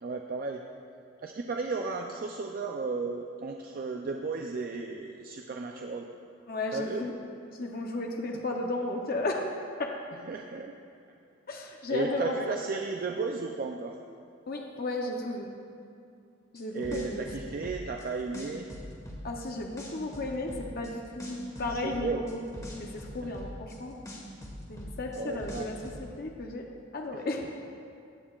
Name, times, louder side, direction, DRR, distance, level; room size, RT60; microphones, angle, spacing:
voice 1, 0.0-0.6 1.2-6.1 6.7-7.1 10.3-10.7 11.9-14.0 16.7-18.7 21.8-22.2 23.2-23.4 25.2-25.7 27.1-27.2, right 4 dB, 45° right, 2 dB, 0.4 m, -34 dB
voice 2, 6.5-7.1 7.6-9.5 9.8-9.9 11.5-12.3 14.5-15.5 16.5-17.3 19.2-22.4 22.7-24.0 24.7-26.7 26.9-27.5, left 2 dB, 50° left, 1 dB, 0.7 m, -34 dB
sound 1, 16.5-18.0 18.3-19.5 19.8-20.9 21.2-23.8 24.0-26.0, left 1 dB, 15° left, 1.4 m, -42 dB
16.0 x 9.2 x 2.4 m, 2.4 s
head